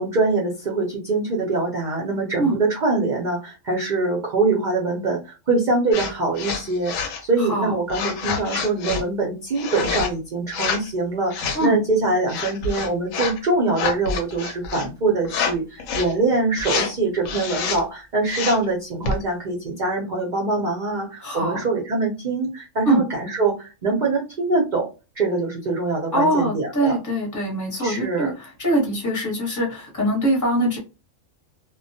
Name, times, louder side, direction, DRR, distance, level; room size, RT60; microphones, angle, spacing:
voice 1, 0.0-24.9 25.2-27.0 27.8-28.3, right 3 dB, 55° right, -1 dB, 0.5 m, -23 dB
sound 1, 5.9-6.1 6.4-7.2 7.9-9.0 9.6-10.1 10.5-10.9 11.3-11.7 12.3-13.4 13.7-14.9 15.3-15.5 15.8-16.1 16.6-16.9 17.3-17.8 18.3-18.7 19.0-19.2, left 5 dB, 80° left, 1.0 m, -27 dB
voice 2, 7.4-7.7 11.5-11.8 21.2-21.6 22.8-23.0 26.1-30.8, right 1 dB, 15° left, -1 dB, 0.8 m, -23 dB
2.2 x 2.1 x 2.6 m, 0.29 s
omnidirectional pair, 1.4 m